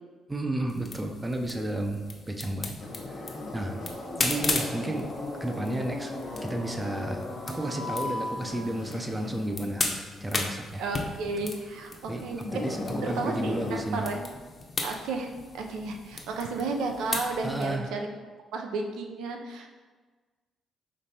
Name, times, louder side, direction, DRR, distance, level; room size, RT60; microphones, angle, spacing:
voice 1, 0.3-2.8 3.1-3.8 4.2-5.1 5.4-6.2 6.4-9.9 10.2-10.8 11.4-11.5 12.1-14.1 17.4-17.9, right 1 dB, 15° right, 4 dB, 0.4 m, -32 dB
sound 1, 0.7-17.8, left 3 dB, 35° left, 0.6 m, -37 dB
sound 2, 2.8-13.8, left 2 dB, 60° left, 0.9 m, -37 dB
voice 2, 10.8-12.4 13.0-14.3 14.8-18.2 18.5-19.7, right 3 dB, 85° right, 3 dB, 0.5 m, -33 dB
5.1 x 3.1 x 2.8 m, 1.4 s
cardioid pair, 90°, 0 cm